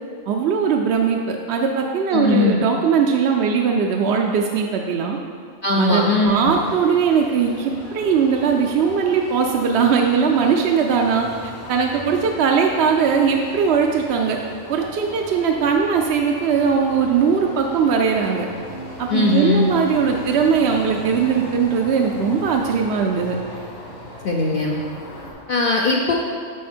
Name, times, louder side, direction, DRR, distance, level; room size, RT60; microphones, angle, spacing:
voice 1, 0.3-5.2 5.8-14.4 14.7-18.5 19.0-23.4, right 6 dB, 65° right, 1 dB, 0.7 m, -20 dB
voice 2, 2.1-2.6 5.6-6.4 19.1-19.7 24.2-24.7 25.5-26.1, left 3 dB, 55° left, -2 dB, 0.7 m, -19 dB
sound 1, 6.3-25.3, equal, 75° left, 2.6 m, -37 dB
8.3 x 5.4 x 4.4 m, 2.1 s
omnidirectional pair, 1.3 m